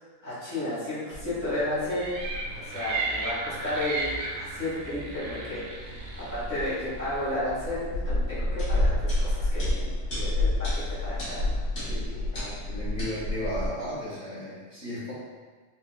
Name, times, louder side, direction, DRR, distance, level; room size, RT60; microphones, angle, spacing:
voice 1, 0.2-2.2 2.5-12.3, left 1 dB, 15° right, -12 dB, 1.0 m, -33 dB
sound 1, 1.1-13.7, left 1 dB, 80° left, 1.9 m, -31 dB
sound 2, 1.9-7.3, right 3 dB, 65° right, 0.8 m, -35 dB
voice 2, 12.3-15.1, left 1 dB, 40° left, -10 dB, 1.5 m, -35 dB
4.3 x 2.3 x 2.2 m, 1.4 s
omnidirectional pair, 1.4 m